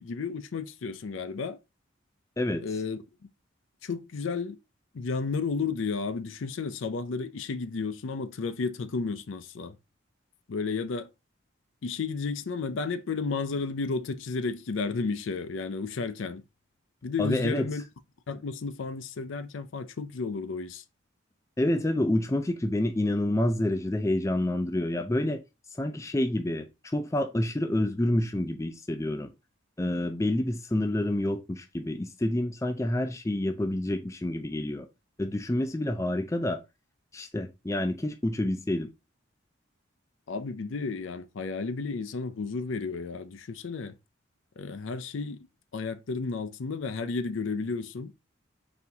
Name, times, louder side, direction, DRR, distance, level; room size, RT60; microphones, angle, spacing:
voice 1, 0.0-1.6 2.6-3.0 3.8-4.6 4.9-9.8 10.5-11.1 11.8-16.4 17.0-17.8 18.3-20.8 40.3-44.0 44.6-45.5 45.7-48.1, left 4 dB, 75° left, 0.5 m, -32 dB
voice 2, 17.2-17.7 21.6-25.4 25.8-29.3 29.8-34.9 35.2-36.6 37.1-38.9, left 1 dB, 15° left, 0.4 m, -28 dB
4.2 x 2.8 x 3.4 m
head